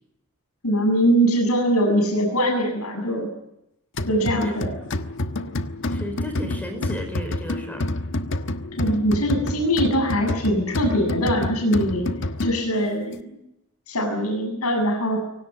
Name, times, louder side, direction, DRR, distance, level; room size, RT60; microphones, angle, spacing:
voice 1, 0.6-3.3 4.1-4.7 8.8-12.1 12.4-13.4 13.9-15.2, equal, 85° left, 3 dB, 7.6 m, -22 dB
sound 1, 4.0-12.9, left 1 dB, 60° left, 1.4 m, -28 dB
voice 2, 4.1-4.4 5.9-7.8, equal, 10° left, 5 dB, 4.9 m, -33 dB
24.5 x 18.0 x 9.5 m, 0.84 s
head